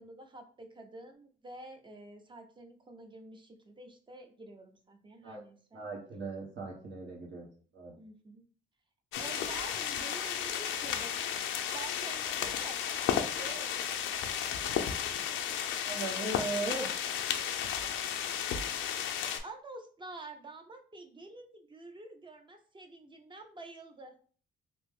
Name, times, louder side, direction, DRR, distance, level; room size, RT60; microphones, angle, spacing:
voice 1, 0.0-5.8 8.0-8.4 9.2-11.2 11.7-12.8 13.1-14.0 19.4-24.1, right 2 dB, 25° right, 5 dB, 0.6 m, -48 dB
voice 2, 5.7-7.5 7.7-8.0 15.8-16.9, right 3 dB, 65° right, -4 dB, 1.0 m, -38 dB
sound 1, 9.1-19.4, left 9 dB, 80° left, 0.4 m, -33 dB
2.9 x 2.0 x 3.5 m, 0.42 s
cardioid pair, 90°, 20 cm